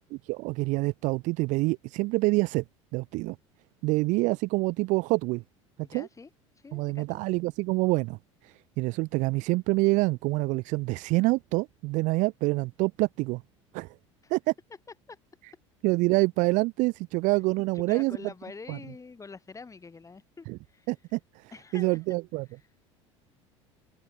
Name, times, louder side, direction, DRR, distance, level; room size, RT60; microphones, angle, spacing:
voice 1, 0.2-2.6 2.9-3.4 3.8-5.4 5.9-6.1 6.7-13.4 13.7-13.9 14.3-14.5 15.8-18.2 18.7-18.8 20.5-20.6 20.9-22.4, right 23 dB, 50° right, 0.7 m, -26 dB
voice 2, 5.8-6.3 6.6-7.2 14.2-14.3 15.1-15.2 17.7-20.9 21.5-22.0, left 4 dB, 20° left, 6.9 m, -45 dB
figure-of-eight pair, 65°, 16 cm